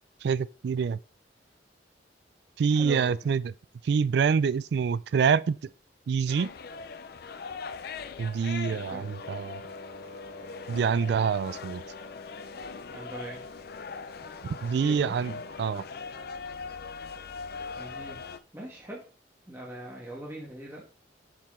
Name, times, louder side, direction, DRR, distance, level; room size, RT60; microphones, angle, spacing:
voice 1, 0.2-1.0 2.6-3.4 3.8-5.6 6.1-6.5 8.2-9.6 10.7-11.8 14.6-15.3 15.6-15.8, right 6 dB, 65° right, 0.3 m, -26 dB
voice 2, 2.7-3.3 8.7-9.1 12.9-13.4 14.8-15.2 17.8-18.2 18.5-19.1 19.5-20.9, right 1 dB, 15° right, 1.4 m, -41 dB
sound 1, 6.3-18.4, left 5 dB, 60° left, 0.5 m, -41 dB
Wind instrument woodwind instrument, 8.7-16.3, left 2 dB, 85° left, 2.0 m, -47 dB
7.3 x 4.6 x 3.7 m
head